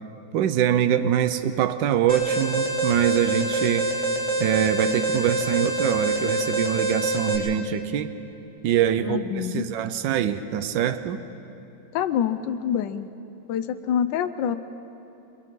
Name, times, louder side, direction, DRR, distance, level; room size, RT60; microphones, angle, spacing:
voice 1, 0.3-3.9 4.4-8.1 8.6-11.2, right 10 dB, 80° right, 11 dB, 1.5 m, -24 dB
Alarm, 2.1-7.4, right 2 dB, 15° right, 2.9 m, -26 dB
voice 2, 9.0-9.6 11.9-13.1 13.5-14.6, left 9 dB, 75° left, 10 dB, 1.4 m, -26 dB
29.5 x 23.5 x 3.8 m, 2.9 s
omnidirectional pair, 2.1 m